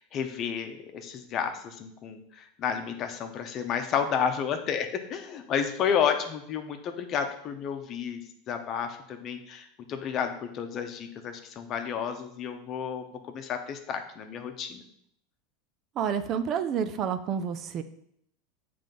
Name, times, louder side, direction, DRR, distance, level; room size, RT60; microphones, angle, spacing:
voice 1, 0.1-8.2 8.5-13.0 13.3-14.8, left 7 dB, 40° left, 6 dB, 0.9 m, -31 dB
voice 2, 16.0-17.8, right 7 dB, 40° right, 10 dB, 0.5 m, -29 dB
7.4 x 3.4 x 5.3 m, 0.71 s
supercardioid pair, 120°, 0 cm